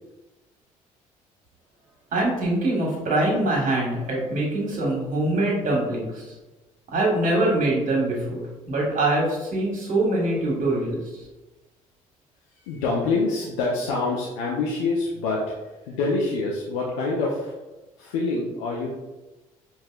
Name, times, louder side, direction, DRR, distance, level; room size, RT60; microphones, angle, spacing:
voice 1, 2.1-6.2 6.9-11.0, right 2 dB, 50° right, -3 dB, 1.5 m, -23 dB
voice 2, 12.6-15.6 15.8-17.5 18.0-18.9, left 3 dB, 75° left, -3 dB, 0.6 m, -26 dB
4.7 x 2.7 x 2.4 m, 1.1 s
hypercardioid pair, 55°, 18 cm